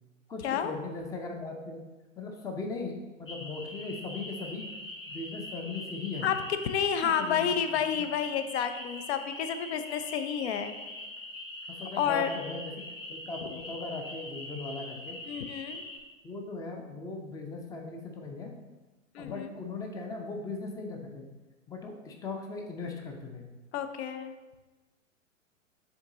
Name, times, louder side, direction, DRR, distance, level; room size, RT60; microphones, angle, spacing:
voice 1, 0.3-1.8 2.2-4.7 5.1-6.3 7.0-8.1 11.7-15.2 16.2-18.6 19.2-21.3 21.7-23.5, left 3 dB, 10° left, 2 dB, 0.5 m, -38 dB
sound 1, 3.3-16.0, left 1 dB, 80° left, 1.2 m, -43 dB
voice 2, 6.6-10.7 12.0-12.3 15.3-15.8 19.1-19.5 23.7-24.3, left 8 dB, 55° left, 9 dB, 0.7 m, -30 dB
7.2 x 3.7 x 3.8 m, 1.2 s
figure-of-eight pair, 100°, 39 cm